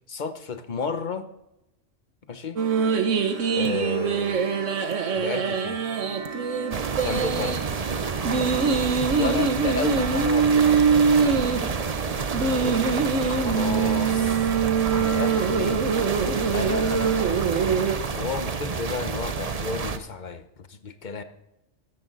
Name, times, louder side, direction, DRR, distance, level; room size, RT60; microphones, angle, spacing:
voice 1, 0.1-1.3 2.3-2.6 3.5-4.6 5.1-5.8 7.0-7.6 9.2-10.9 12.4-12.8 13.3-14.5 14.9-15.8 16.5-17.5 18.1-21.2, left 4 dB, 40° left, 10 dB, 1.1 m, -32 dB
sound 1, 2.6-18.0, right 5 dB, 80° right, 1.5 m, -24 dB
sound 2, 6.7-20.0, right 5 dB, 35° right, 0.8 m, -29 dB
14.0 x 14.0 x 4.1 m, 0.90 s
omnidirectional pair, 1.3 m